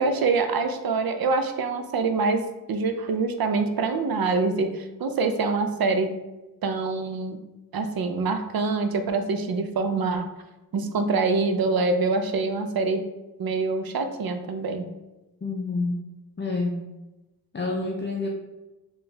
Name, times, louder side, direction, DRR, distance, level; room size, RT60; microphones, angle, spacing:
voice 1, 0.0-6.1 6.6-7.4 7.7-10.3 10.7-13.1 13.4-14.8, right 4 dB, 75° right, 7 dB, 0.5 m, -25 dB
voice 2, 15.4-16.0 16.4-16.8 17.5-18.3, left 3 dB, 30° left, 0 dB, 0.5 m, -28 dB
4.4 x 2.3 x 3.2 m, 1.0 s
cardioid pair, 55°, 37 cm